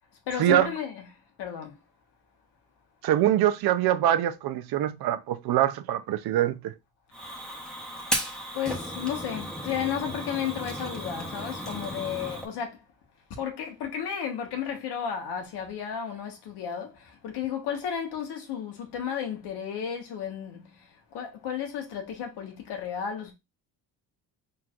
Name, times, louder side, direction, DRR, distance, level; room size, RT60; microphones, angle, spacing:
voice 1, 0.3-1.1 1.4-1.8 7.9-12.8 13.3-23.3, left 8 dB, 85° left, 1.4 m, -33 dB
voice 2, 3.0-6.7, right 12 dB, 70° right, 0.6 m, -24 dB
Fire, 7.1-12.5, equal, ahead, 1.0 m, -35 dB
4.4 x 3.8 x 2.5 m
cardioid pair, 125°, 39 cm